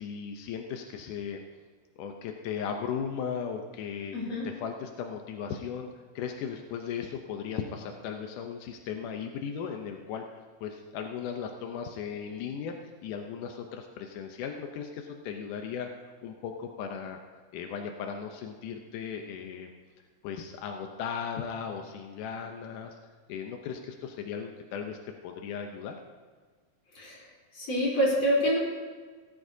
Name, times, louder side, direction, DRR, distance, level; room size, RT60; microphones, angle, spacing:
voice 1, 0.0-1.4 2.0-4.2 4.4-5.9 6.2-12.7 13.0-15.9 16.2-17.2 17.5-19.7 20.2-23.0 23.3-25.0 25.2-26.0, left 7 dB, 90° left, 3 dB, 2.4 m, -37 dB
voice 2, 4.1-4.5 26.9-27.3 27.5-28.6, equal, 40° left, -5 dB, 4.4 m, -26 dB
18.0 x 13.5 x 2.7 m, 1.5 s
omnidirectional pair, 3.5 m